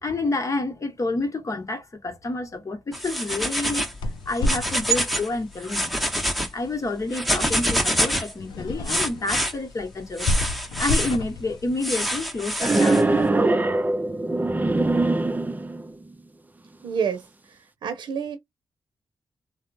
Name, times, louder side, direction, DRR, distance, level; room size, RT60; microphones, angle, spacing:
voice 1, 0.0-3.9 4.3-5.9 6.5-10.3 10.8-13.3, left 2 dB, 45° left, 1.0 m, -29 dB
sound 1, 2.9-4.0 4.3-5.3 5.6-6.5 7.1-8.3 8.9-9.5 10.2-11.2 11.8-13.0, equal, ahead, 0.9 m, -26 dB
sound 2, 3.7-13.1, left 2 dB, 85° left, 0.4 m, -32 dB
sound 3, 12.6-15.9, right 2 dB, 20° right, 0.5 m, -22 dB
voice 2, 16.8-17.2 17.8-18.4, right 7 dB, 80° right, 0.7 m, -27 dB
3.0 x 2.1 x 2.5 m
cardioid pair, 55°, 8 cm